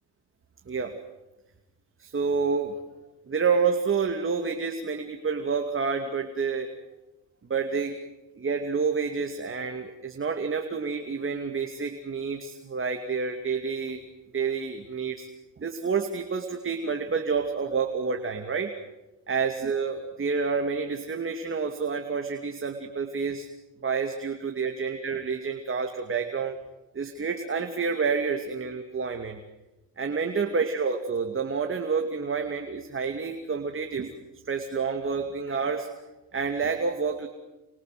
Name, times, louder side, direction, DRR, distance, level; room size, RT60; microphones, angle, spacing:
voice 1, 0.7-1.0 2.0-2.8 3.3-6.7 7.5-7.9 8.4-14.0 14.3-15.3 15.6-18.7 19.3-23.5 23.8-26.6 26.9-29.4 30.0-34.1 34.5-35.9 36.3-37.3, right 5 dB, 30° right, 4 dB, 2.7 m, -29 dB
29.0 x 24.5 x 7.9 m, 1.0 s
cardioid pair, 95°, 42 cm